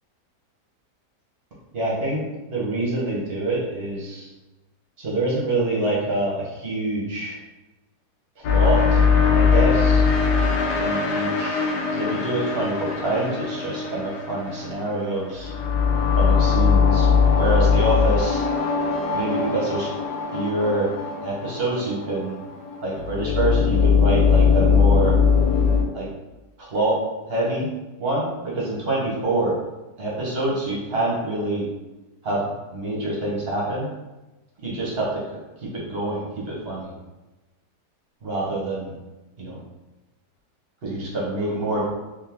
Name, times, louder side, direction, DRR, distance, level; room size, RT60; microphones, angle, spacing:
voice 1, 1.7-2.2 2.5-4.3 5.0-7.4 8.4-9.0 9.3-10.1 10.8-15.5 16.2-17.1 17.3-18.4 19.1-19.9 20.3-20.9 21.2-22.4 22.8-25.2 25.9-26.1 26.6-27.7 28.0-29.6 30.0-31.7 32.2-33.9 34.6-36.9 38.2-38.9 39.4-39.6 40.8-41.9, right 2 dB, 40° right, -5 dB, 1.2 m, -26 dB
sound 1, 8.4-25.8, left 5 dB, 75° left, 1.1 m, -21 dB
3.6 x 2.8 x 3.0 m, 1.1 s
omnidirectional pair, 1.7 m